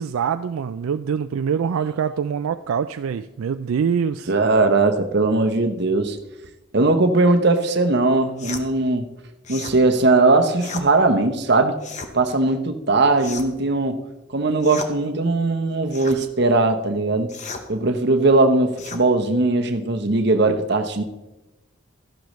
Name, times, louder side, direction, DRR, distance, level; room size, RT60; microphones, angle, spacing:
voice 1, 0.0-4.3, right 7 dB, 75° right, 10 dB, 0.3 m, -24 dB
voice 2, 4.3-6.2 6.7-9.1 9.5-11.8 12.1-14.0 14.3-17.3 17.7-21.0, right 2 dB, 50° right, 6 dB, 0.9 m, -19 dB
sound 1, 8.4-8.7 9.4-9.8 10.6-10.9 11.8-12.1 13.2-13.6 14.6-14.9 15.9-16.2 17.3-17.7 18.8-19.0, left 4 dB, 35° left, 0.9 m, -34 dB
13.5 x 11.5 x 3.1 m, 1.0 s
head